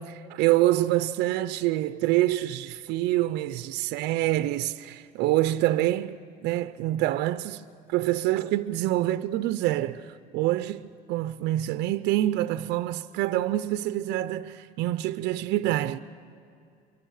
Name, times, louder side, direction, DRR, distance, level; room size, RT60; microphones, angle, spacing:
voice 1, 0.0-6.2 6.4-16.0, right 15 dB, 90° right, 0.6 m, -26 dB
23.5 x 23.5 x 6.5 m
cardioid pair, 110°, 17 cm